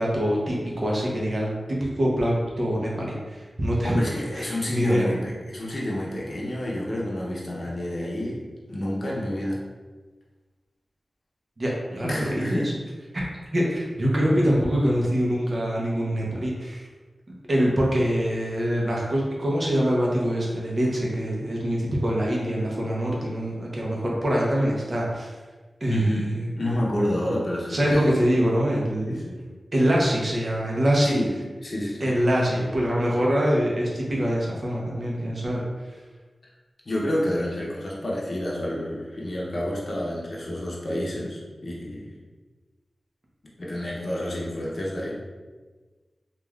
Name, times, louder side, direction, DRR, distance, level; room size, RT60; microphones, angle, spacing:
voice 1, 0.0-4.0 4.3-5.1 11.6-12.6 13.1-13.3 13.5-16.9 17.3-25.3 25.8-26.5 27.7-29.2 29.7-31.1 32.0-35.6, equal, 50° right, -4 dB, 0.6 m, -24 dB
voice 2, 3.8-8.4 8.7-9.6 12.0-12.7 25.9-26.3 26.6-28.2 29.1-29.4 31.0-31.3 31.6-32.1 36.9-42.1 43.6-45.2, left 1 dB, 55° left, -4 dB, 0.6 m, -29 dB
3.1 x 2.3 x 2.3 m, 1.3 s
cardioid pair, 45°, 0 cm